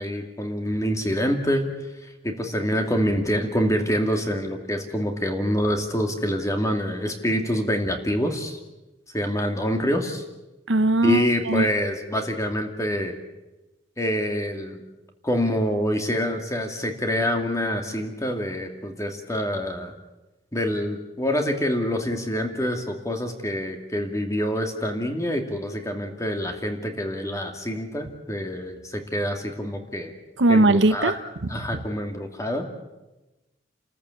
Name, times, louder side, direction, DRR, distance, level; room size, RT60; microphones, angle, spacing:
voice 1, 0.0-1.7 2.2-8.6 9.1-10.2 11.0-13.2 14.0-14.8 15.2-19.9 20.5-30.1 30.5-31.2 31.5-32.7, equal, 20° left, 4 dB, 2.5 m, -26 dB
voice 2, 10.7-11.7 30.4-31.1, right 2 dB, 90° right, 13 dB, 0.9 m, -19 dB
29.5 x 14.0 x 8.4 m, 1.1 s
head